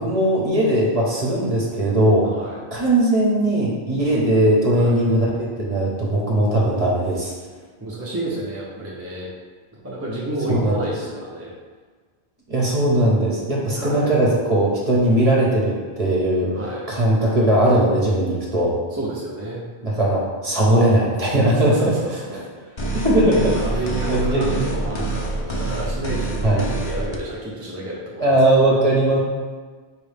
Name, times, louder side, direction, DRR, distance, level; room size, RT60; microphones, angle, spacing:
voice 1, 0.0-2.3 2.7-7.3 10.5-10.8 12.5-16.5 16.9-18.7 19.8-21.9 22.3-22.5 22.9-23.4 24.1-24.7 26.4-26.6 28.2-29.2, right 1 dB, 35° right, -4 dB, 1.0 m, -19 dB
voice 2, 2.2-2.6 4.7-5.0 7.8-9.3 9.7-11.5 13.8-14.1 16.5-16.9 18.9-19.6 21.4-22.9 23.2-28.8, right 1 dB, 15° right, -6 dB, 0.6 m, -30 dB
sound 1, 22.8-27.2, right 2 dB, 40° left, 0.4 m, -26 dB
5.0 x 3.0 x 3.4 m, 1.5 s
omnidirectional pair, 1.1 m